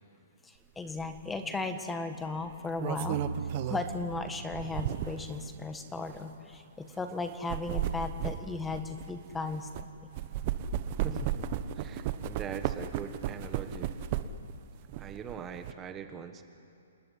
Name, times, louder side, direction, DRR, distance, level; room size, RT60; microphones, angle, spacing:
voice 1, 0.4-10.1, left 3 dB, 5° left, 8 dB, 1.4 m, -36 dB
sound 1, 1.0-1.2 2.5-5.3 6.0-6.2 7.3-9.8 10.2-14.5 14.9-15.7, right 10 dB, 35° right, 1.0 m, -34 dB
sound 2, 3.0-5.9, right 5 dB, 85° right, 1.7 m, -40 dB
voice 2, 11.0-11.5 11.7-13.9 15.0-16.4, right 7 dB, 15° right, 7 dB, 1.3 m, -42 dB
29.0 x 18.5 x 10.0 m, 2.6 s
hypercardioid pair, 160°, 0 cm